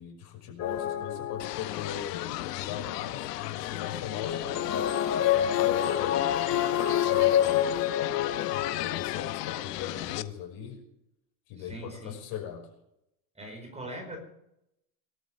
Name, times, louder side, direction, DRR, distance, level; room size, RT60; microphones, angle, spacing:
voice 1, 0.0-6.3 7.0-7.7 8.5-10.8 11.5-12.7, left 9 dB, 50° left, 1 dB, 5.8 m, -39 dB
sound 1, 0.6-1.9 4.2-9.5, left 10 dB, 30° left, 1.7 m, -27 dB
sound 2, 1.4-10.2, left 16 dB, 85° left, 1.0 m, -35 dB
voice 2, 11.6-12.2 13.3-14.2, right 1 dB, 15° right, 2 dB, 5.0 m, -41 dB
23.5 x 13.0 x 3.5 m, 0.81 s
supercardioid pair, 135°, 47 cm